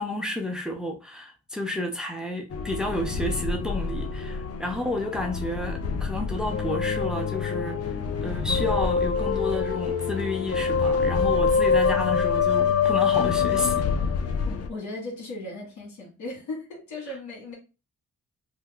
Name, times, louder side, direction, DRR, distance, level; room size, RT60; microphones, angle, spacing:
voice 1, 0.0-7.8 8.2-13.9, left 1 dB, ahead, 0.7 m, -31 dB
sound 1, 2.5-14.7, left 6 dB, 55° left, 0.6 m, -25 dB
voice 2, 14.5-17.5, left 2 dB, 75° left, 1.6 m, -37 dB
2.8 x 2.2 x 3.4 m
cardioid pair, 65°, 29 cm